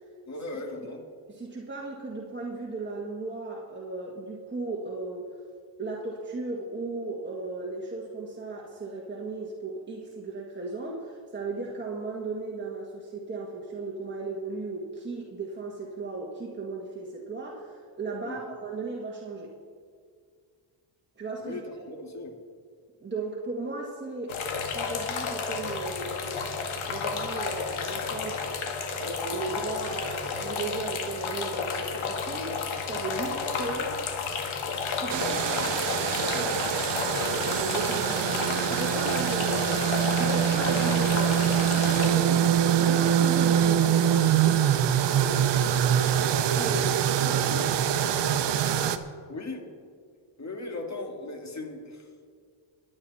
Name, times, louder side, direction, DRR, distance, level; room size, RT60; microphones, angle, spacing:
voice 1, 0.3-1.1 18.2-18.4 21.4-22.3 41.6-42.4 49.3-49.7 50.4-52.1, left 2 dB, 35° left, 3 dB, 2.3 m, -38 dB
voice 2, 1.3-5.3 5.8-19.5 21.2-21.8 23.0-24.4 24.7-26.3 26.9-34.0 34.9-35.9 36.3-36.6 37.2-39.8 40.1-41.5 41.7-42.5 42.8-45.6 46.5-47.8, right 3 dB, 20° right, -2 dB, 1.7 m, -36 dB
sound 1, 24.3-42.1, left 5 dB, 75° left, 2.0 m, -32 dB
sound 2, 35.1-49.0, right 9 dB, 60° right, 0.9 m, -24 dB
23.0 x 8.8 x 4.2 m, 2.1 s
cardioid pair, 100°, 49 cm